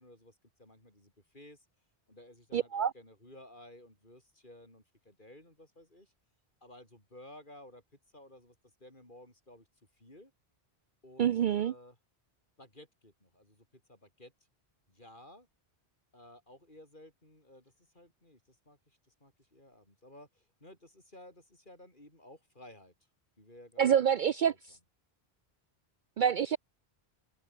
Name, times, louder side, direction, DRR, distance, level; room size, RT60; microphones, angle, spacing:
voice 1, 0.0-1.7 2.1-6.1 6.6-7.8 8.1-8.6 8.8-9.7 10.0-10.3 11.0-12.0 12.6-14.3 14.9-15.5 16.1-22.9 23.4-23.9 24.5-24.6, left 1 dB, 50° left, 7.4 m, -55 dB
voice 2, 2.5-2.9 11.2-11.7 23.8-24.5 26.2-26.6, right 8 dB, 60° right, 0.6 m, -26 dB
omnidirectional pair, 1.1 m